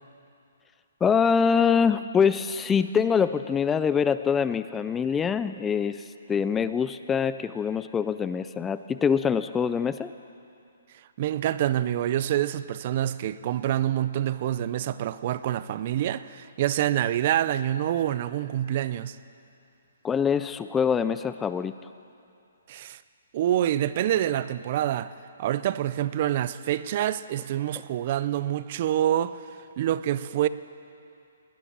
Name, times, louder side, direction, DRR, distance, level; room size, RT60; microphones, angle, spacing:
voice 1, 1.0-10.1 20.0-21.7, left 6 dB, 10° left, 13 dB, 0.4 m, -24 dB
voice 2, 11.2-19.2 22.7-23.0 23.3-25.1 25.4-29.3 29.8-30.5, right 12 dB, 45° right, 15 dB, 0.5 m, -26 dB
19.5 x 10.0 x 7.4 m, 2.6 s
hypercardioid pair, 150°, 0 cm